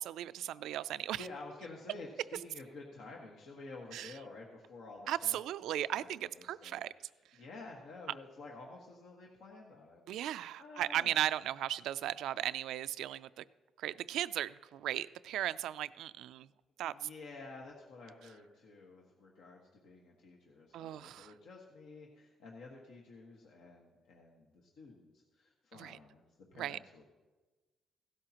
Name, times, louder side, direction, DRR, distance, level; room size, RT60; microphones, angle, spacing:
voice 1, 0.0-1.2 3.9-4.1 5.1-6.9 10.1-13.4 13.8-16.5 16.8-17.1 20.7-21.3 25.7-26.0 26.5-26.8, right 12 dB, 85° right, 15 dB, 0.3 m, -36 dB
voice 2, 1.2-5.4 5.9-7.1 7.3-10.3 10.6-11.2 16.8-26.2 26.5-27.0, left 3 dB, 80° left, -1 dB, 1.5 m, -51 dB
16.0 x 12.5 x 2.9 m, 1.2 s
cardioid pair, 90°, 0 cm